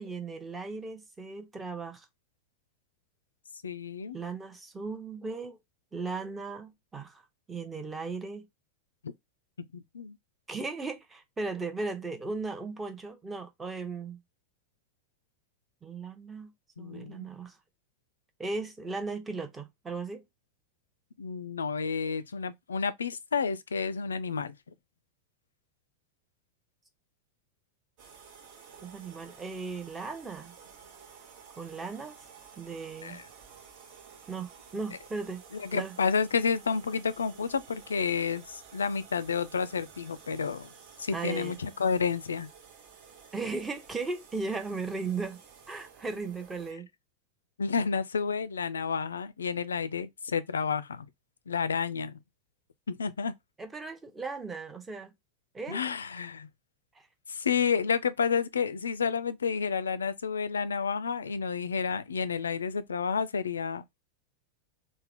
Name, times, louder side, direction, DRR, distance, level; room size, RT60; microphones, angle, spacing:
voice 1, 0.0-2.1 4.1-5.6 5.9-7.2 7.5-8.5 10.5-14.2 15.8-16.5 16.8-17.6 18.4-20.2 28.8-30.6 31.6-32.2 32.6-33.2 34.3-35.4 35.7-36.0 41.1-41.6 43.3-45.4 45.7-46.9 53.6-55.1 55.5-55.8 57.0-57.1, right 4 dB, 10° right, 0.7 m, -37 dB
voice 2, 3.6-4.2 9.7-10.2 16.8-17.3 21.2-24.5 33.0-33.2 35.5-40.7 41.0-42.5 47.6-51.1 51.5-52.2 52.9-53.3 55.7-56.5 57.3-64.0, left 6 dB, 70° left, 0.3 m, -30 dB
sound 1, 28.0-46.7, right 6 dB, 45° right, 0.8 m, -53 dB
3.4 x 2.0 x 3.5 m
figure-of-eight pair, 90°, 0 cm